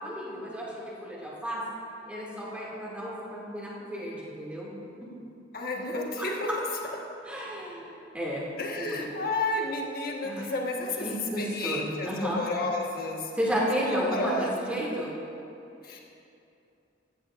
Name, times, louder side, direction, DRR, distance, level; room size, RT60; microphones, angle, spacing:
voice 1, 0.0-0.7 1.0-1.6 2.1-4.7 6.2-6.3 7.2-8.4 8.8-9.1 10.2-10.5 11.0-12.4 13.3-15.1, equal, 5° right, -6 dB, 2.3 m, -32 dB
voice 2, 5.5-6.5 8.6-13.3 13.8-14.8 15.8-16.0, left 2 dB, 50° left, -1 dB, 1.4 m, -31 dB
14.5 x 14.5 x 2.5 m, 2.8 s
head